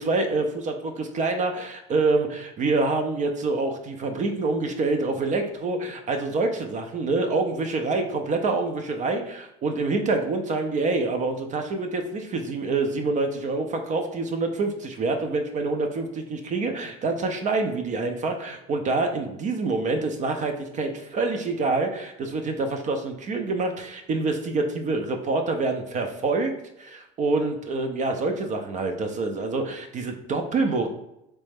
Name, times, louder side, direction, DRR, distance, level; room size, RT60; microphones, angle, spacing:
voice 1, 0.0-26.5 26.8-30.9, right 3 dB, 40° right, 5 dB, 0.5 m, -26 dB
3.2 x 3.0 x 3.4 m, 0.83 s
supercardioid pair, 95°, 20 cm